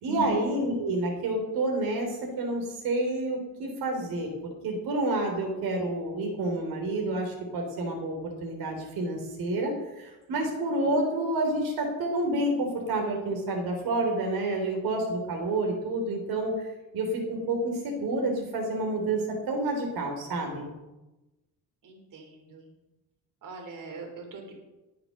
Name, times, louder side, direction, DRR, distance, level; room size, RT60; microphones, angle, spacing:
voice 1, 0.0-4.3 4.6-16.7 16.9-20.7, right 2 dB, 85° right, 2 dB, 3.6 m, -29 dB
voice 2, 21.8-22.7 23.4-24.6, right 4 dB, 60° right, 2 dB, 3.4 m, -41 dB
19.5 x 7.0 x 6.6 m, 1.1 s
cardioid pair, 135°, 37 cm